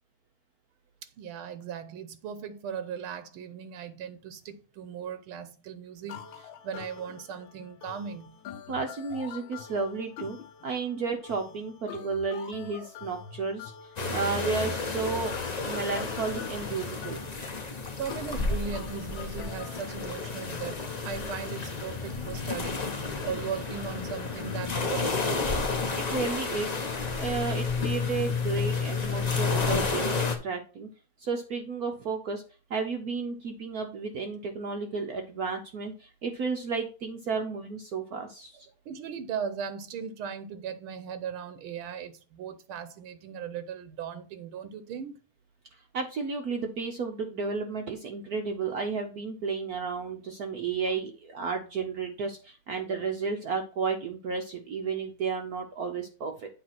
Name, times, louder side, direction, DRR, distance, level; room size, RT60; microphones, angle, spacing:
voice 1, 1.2-8.3 11.0-11.1 18.0-22.9 23.2-25.7 38.8-45.2, right 7 dB, 85° right, 1.6 m, -38 dB
sound 1, 6.1-19.8, left 8 dB, 75° left, 1.4 m, -45 dB
voice 2, 8.7-10.4 10.6-15.3 15.6-17.2 26.0-26.9 27.2-30.9 31.2-32.4 32.7-38.7 45.7-56.5, right 4 dB, 60° right, 1.0 m, -32 dB
sound 2, 14.0-30.4, left 4 dB, 50° left, 0.4 m, -31 dB
8.7 x 3.1 x 5.8 m
omnidirectional pair, 2.3 m